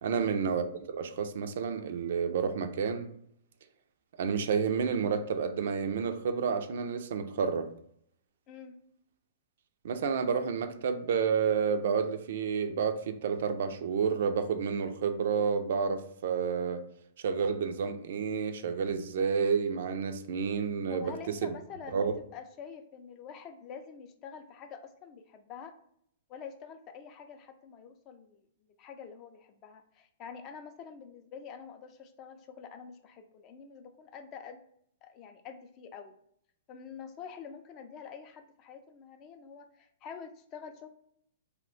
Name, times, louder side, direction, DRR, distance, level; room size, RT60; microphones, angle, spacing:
voice 1, 0.0-3.1 4.2-7.7 9.8-16.8 17.2-21.5 21.9-22.1, right 6 dB, 70° right, 0.4 m, -30 dB
voice 2, 20.9-25.8 26.3-28.4 28.8-34.6 35.0-36.1 36.7-40.9, left 6 dB, 30° left, 0.4 m, -47 dB
2.7 x 2.2 x 3.8 m
hypercardioid pair, 140°, 0 cm